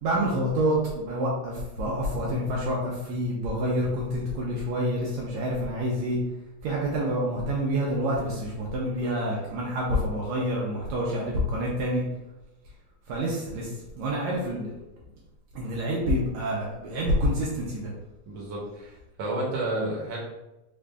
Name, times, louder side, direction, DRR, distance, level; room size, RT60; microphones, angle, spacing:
voice 1, 0.0-6.2 6.6-12.0 13.1-14.7 15.5-17.9, equal, 75° right, -3 dB, 1.9 m, -27 dB
voice 2, 18.3-20.2, right 1 dB, 55° right, -4 dB, 1.7 m, -31 dB
4.9 x 2.5 x 3.3 m, 0.97 s
omnidirectional pair, 3.4 m